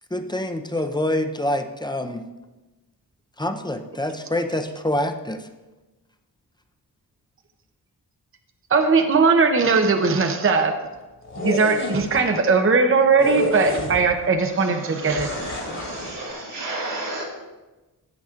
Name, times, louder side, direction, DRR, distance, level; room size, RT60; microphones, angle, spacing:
voice 1, 0.1-2.2 3.4-5.4, left 1 dB, 10° left, 6 dB, 0.5 m, -26 dB
voice 2, 8.7-10.7 11.4-15.3, right 4 dB, 30° right, 5 dB, 0.7 m, -19 dB
sound 1, 11.2-12.2 13.2-14.3 15.2-16.1, left 1 dB, 40° left, 2.0 m, -29 dB
voice 3, 14.5-17.2, right 2 dB, 90° right, -5 dB, 3.3 m, -33 dB
14.5 x 7.8 x 2.4 m, 1.1 s
wide cardioid pair, 115°, 40 cm